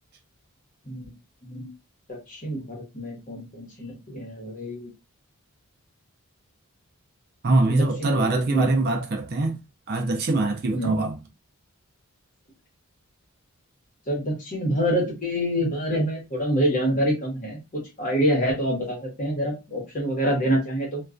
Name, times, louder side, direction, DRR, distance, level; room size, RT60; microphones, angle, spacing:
voice 1, 2.1-4.9 7.7-8.7 10.7-11.1 14.1-21.0, equal, 35° left, 1.0 m, -26 dB
voice 2, 7.4-9.6 9.9-11.2, right 2 dB, 45° right, 0.4 m, -23 dB
2.3 x 2.2 x 2.4 m
head